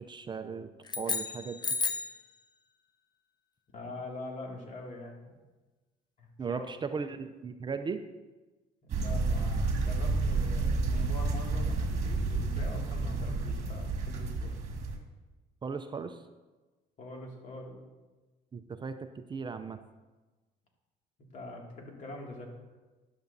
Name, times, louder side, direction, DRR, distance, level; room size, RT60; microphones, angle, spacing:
voice 1, 0.0-1.6 6.4-8.0 15.6-16.2 18.5-19.0 19.3-19.8, right 5 dB, 25° right, 8 dB, 0.5 m, -37 dB
sound 1, 0.8-2.2, left 4 dB, 25° left, 0.6 m, -32 dB
voice 2, 3.7-5.3 6.2-6.9 8.8-14.6 17.0-17.8 21.3-22.5, left 2 dB, 50° left, 0 dB, 2.3 m, -44 dB
sound 2, 8.9-15.0, right 3 dB, 45° right, 1.9 m, -30 dB
13.0 x 10.5 x 2.7 m, 1.2 s
cardioid pair, 110°, 17 cm